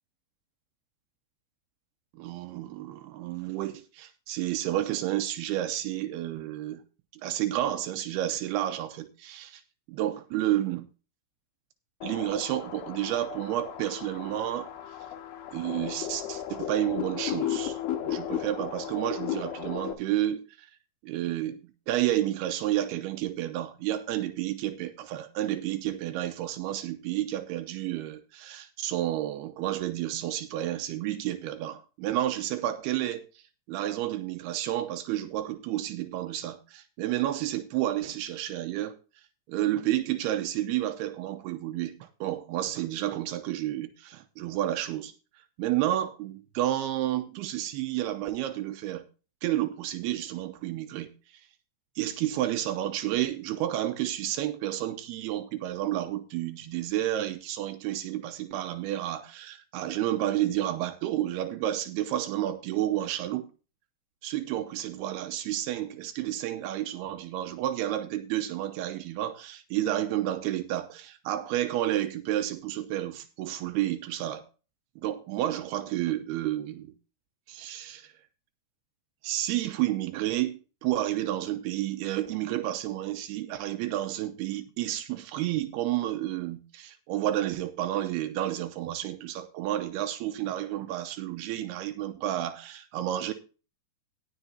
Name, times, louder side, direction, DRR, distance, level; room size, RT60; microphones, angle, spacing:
voice 1, 2.1-6.8 7.2-9.6 9.9-10.9 12.0-15.0 15.5-17.8 18.0-20.7 21.0-33.4 33.7-39.0 39.5-45.1 45.6-49.1 49.4-51.4 52.0-63.5 64.2-74.5 75.0-76.9 77.5-78.1 79.2-93.3, right 13 dB, 85° right, 2.7 m, -31 dB
sound 1, 12.0-19.9, left 11 dB, 80° left, 3.1 m, -35 dB
18.0 x 6.9 x 2.8 m
omnidirectional pair, 4.5 m